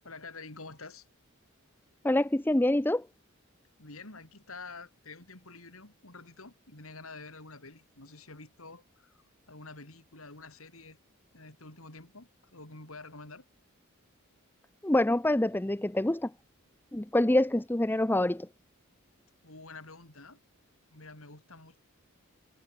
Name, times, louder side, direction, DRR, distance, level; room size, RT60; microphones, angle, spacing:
voice 1, 0.0-1.1 3.8-9.1 9.5-11.0 11.3-13.4 19.4-20.4 20.9-21.8, left 3 dB, 80° left, 4.8 m, -48 dB
voice 2, 2.0-3.0 14.8-16.3 16.9-18.5, left 1 dB, 10° left, 0.6 m, -26 dB
head